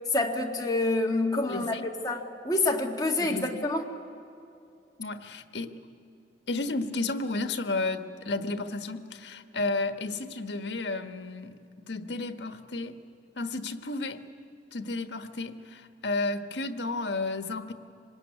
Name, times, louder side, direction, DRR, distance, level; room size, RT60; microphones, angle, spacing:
voice 1, 0.1-3.8, left 2 dB, 20° left, 1.9 m, -27 dB
voice 2, 1.5-1.8 3.2-3.7 5.0-5.8 6.5-11.6 11.8-13.0 13.4-14.2 14.7-17.7, left 3 dB, 80° left, 1.3 m, -32 dB
25.0 x 19.5 x 9.6 m
head